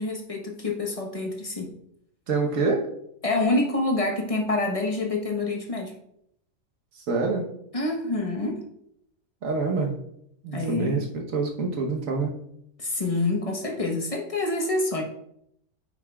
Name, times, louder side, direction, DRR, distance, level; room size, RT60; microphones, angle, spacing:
voice 1, 0.0-1.7 3.2-5.9 7.7-8.6 10.5-11.0 12.8-15.0, left 2 dB, 30° left, 1 dB, 1.0 m, -27 dB
voice 2, 2.3-2.9 7.1-7.4 9.4-9.9 10.4-12.3, right 3 dB, 75° right, 2 dB, 1.5 m, -26 dB
8.9 x 6.1 x 2.3 m, 0.74 s
omnidirectional pair, 1.4 m